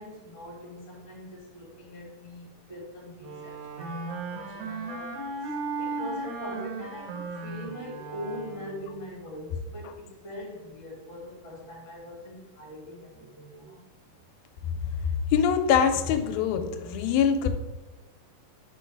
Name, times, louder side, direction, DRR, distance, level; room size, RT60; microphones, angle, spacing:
voice 1, 0.0-13.8, equal, 35° left, -3 dB, 0.9 m, -42 dB
Wind instrument woodwind instrument, 3.2-9.0, right 3 dB, 70° right, 2.0 m, -36 dB
voice 2, 15.3-17.5, left 7 dB, 90° left, 7 dB, 2.5 m, -23 dB
5.1 x 4.6 x 4.5 m, 1.0 s
omnidirectional pair, 4.2 m